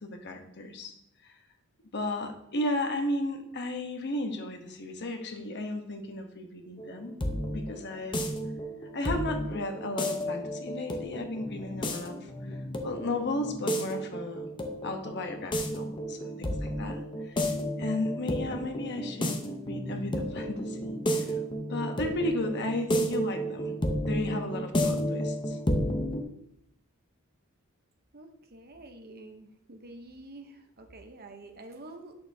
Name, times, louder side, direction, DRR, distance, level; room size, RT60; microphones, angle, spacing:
voice 1, 0.0-0.9 1.2-1.3 1.9-7.2 7.5-8.2 8.9-12.6 12.8-14.5 14.8-17.0 17.2-17.5 17.8-19.4 19.7-21.3 21.7-23.7 24.0-25.6, left 1 dB, 50° left, 5 dB, 1.0 m, -34 dB
sound 1, 6.8-26.2, equal, 20° left, 0.8 m, -32 dB
voice 2, 28.1-32.1, right 2 dB, 45° right, 6 dB, 0.8 m, -48 dB
8.5 x 6.6 x 2.7 m, 0.74 s
head